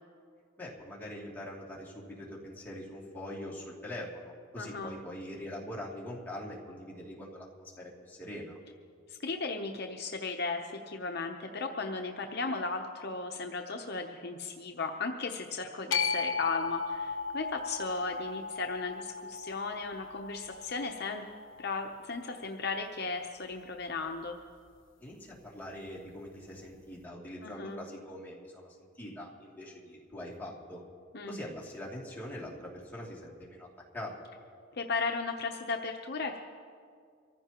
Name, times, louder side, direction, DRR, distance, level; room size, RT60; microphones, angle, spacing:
voice 1, 0.6-8.6 25.0-30.8 31.3-33.7 33.9-34.1, left 1 dB, 10° left, -5 dB, 2.7 m, -43 dB
voice 2, 4.6-4.9 9.1-21.2 21.6-24.4 27.4-27.8 31.1-31.4 34.7-36.4, left 4 dB, 55° left, 3 dB, 0.8 m, -36 dB
sound 1, 15.9-22.1, left 5 dB, 75° left, 1.1 m, -36 dB
24.5 x 15.0 x 3.0 m, 2.2 s
head